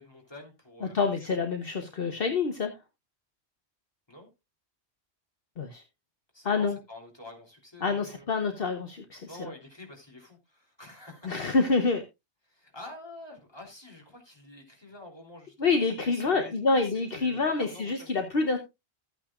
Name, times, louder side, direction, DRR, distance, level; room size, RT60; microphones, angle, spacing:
voice 1, 0.0-1.0 4.1-4.3 6.3-8.2 9.3-11.4 12.5-15.7 16.0-18.1, left 1 dB, 25° left, 3.3 m, -47 dB
voice 2, 0.8-2.7 5.6-5.8 6.4-6.8 7.8-9.5 11.2-12.0 15.6-18.6, left 4 dB, 60° left, 1.2 m, -27 dB
13.5 x 8.8 x 2.4 m
omnidirectional pair, 1.1 m